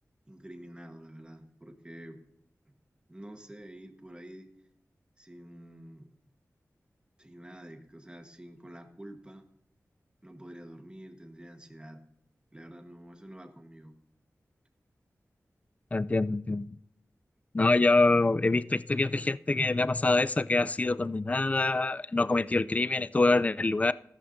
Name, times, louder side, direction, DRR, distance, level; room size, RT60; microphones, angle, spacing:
voice 1, 0.3-2.2 2.7-2.8 3.1-4.5 5.2-6.1 7.2-9.5 10.2-12.0 12.5-14.0, right 1 dB, 15° right, 6 dB, 1.3 m, -48 dB
voice 2, 15.9-16.7 17.5-23.9, left 2 dB, 25° left, 17 dB, 0.3 m, -25 dB
14.0 x 12.5 x 2.6 m, 0.75 s
wide cardioid pair, 85°, 6 cm